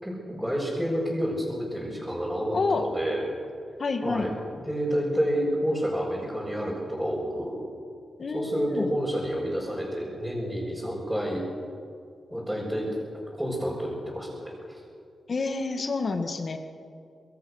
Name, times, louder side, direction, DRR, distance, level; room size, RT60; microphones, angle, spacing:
voice 1, 0.0-3.2 4.0-7.6 8.3-11.5 12.3-12.9 13.4-14.8, equal, 5° right, -7 dB, 6.1 m, -29 dB
voice 2, 2.5-2.9 3.8-4.3 8.2-8.9 15.3-16.6, left 3 dB, 45° left, 6 dB, 1.9 m, -28 dB
25.5 x 21.5 x 6.5 m, 2.3 s
wide cardioid pair, 125°, 0 cm